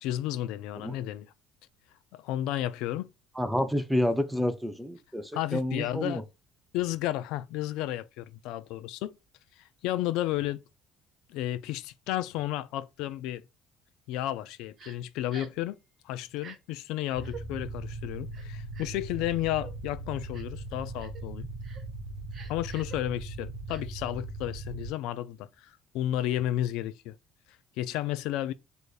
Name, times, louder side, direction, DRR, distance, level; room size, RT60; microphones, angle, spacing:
voice 1, 0.0-1.3 2.1-3.1 5.3-6.2 6.7-9.2 9.6-10.6 11.3-13.4 14.1-15.8 16.0-21.5 22.5-27.2 27.8-28.5, left 13 dB, 75° left, 0.3 m, -32 dB
voice 2, 3.4-6.2, left 1 dB, 5° right, 0.4 m, -29 dB
Crying sobbing, 14.8-15.0 15.3-15.6 16.3-16.6 17.2-17.4 18.3-19.0 19.6-19.7 20.3-20.6 21.0-21.2 21.6-21.8 22.3-23.0 23.7-23.8, right 7 dB, 35° right, 0.7 m, -47 dB
sound 1, 17.2-24.9, right 2 dB, 70° right, 0.6 m, -39 dB
6.3 x 2.6 x 2.3 m
cardioid pair, 165°, 0 cm